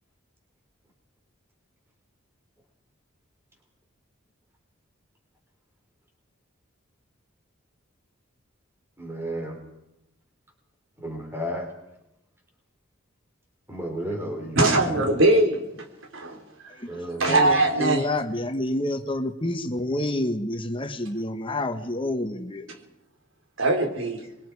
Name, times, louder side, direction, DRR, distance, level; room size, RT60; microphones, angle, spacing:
voice 1, 9.0-9.6 11.0-11.7 13.7-15.1 16.9-17.7, right 1 dB, 10° right, 4.1 m, -33 dB
voice 2, 14.6-15.8 16.1-16.4 17.2-18.0 23.6-24.2, right 2 dB, 75° right, 3.9 m, -21 dB
voice 3, 16.7-22.7, left 1 dB, 25° left, 1.4 m, -29 dB
26.5 x 22.5 x 4.9 m
head